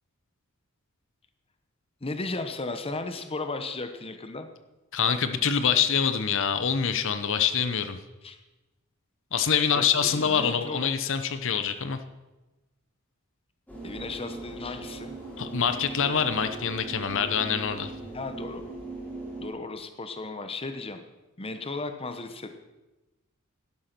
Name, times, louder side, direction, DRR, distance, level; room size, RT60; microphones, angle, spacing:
voice 1, 2.0-4.5 8.2-8.4 9.6-10.8 13.8-15.2 18.1-18.6 19.4-21.0 21.4-22.6, left 3 dB, 25° left, 8 dB, 1.0 m, -35 dB
voice 2, 4.9-8.0 9.3-12.0 15.4-17.9, left 7 dB, 60° left, 10 dB, 0.9 m, -25 dB
sound 1, 13.7-19.5, right 3 dB, 5° left, 4.1 m, -39 dB
12.0 x 11.5 x 6.0 m, 1.1 s
head